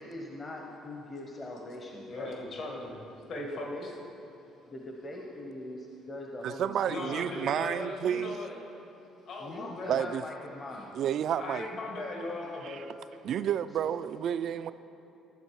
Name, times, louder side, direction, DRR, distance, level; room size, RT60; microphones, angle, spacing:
voice 1, 0.0-2.6 3.4-3.9 4.7-7.1 9.4-10.9 13.8-13.9, left 1 dB, 30° left, 0 dB, 0.9 m, -42 dB
voice 2, 2.1-3.0 3.3-3.9 6.9-8.6 9.2-10.1 11.4-12.9, left 2 dB, 60° left, 0 dB, 1.5 m, -38 dB
voice 3, 6.4-8.4 9.9-10.2 11.0-11.6 12.6-12.8 13.2-14.7, right 9 dB, 55° right, 13 dB, 0.3 m, -30 dB
13.0 x 7.4 x 4.6 m, 2.8 s
cardioid pair, 125°, 0 cm